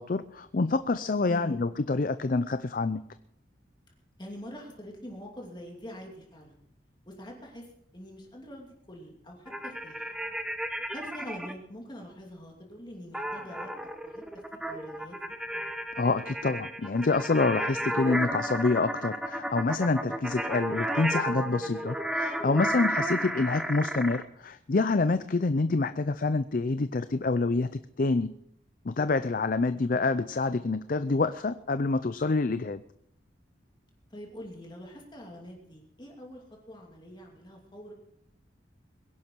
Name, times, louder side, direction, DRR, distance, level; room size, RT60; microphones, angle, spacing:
voice 1, 0.0-3.0 16.0-28.3 28.9-32.8, left 3 dB, 45° left, 12 dB, 0.5 m, -27 dB
voice 2, 1.2-1.6 4.2-6.6 7.1-7.7 7.9-10.1 10.9-13.7 14.0-15.4 21.5-21.9 34.1-37.9, equal, 25° left, 0 dB, 2.6 m, -45 dB
sound 1, 9.5-11.5 13.1-24.2, right 1 dB, 5° right, 0.8 m, -33 dB
22.0 x 11.0 x 4.6 m, 0.74 s
head